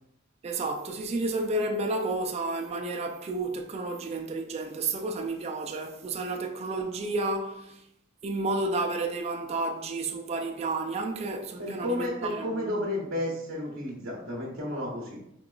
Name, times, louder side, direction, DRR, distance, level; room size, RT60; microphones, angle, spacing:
voice 1, 0.4-7.8 8.2-12.7, right 2 dB, 30° right, 0.3 m, -31 dB
voice 2, 11.6-15.2, left 1 dB, 65° right, 0.8 m, -32 dB
4.7 x 2.9 x 2.3 m
head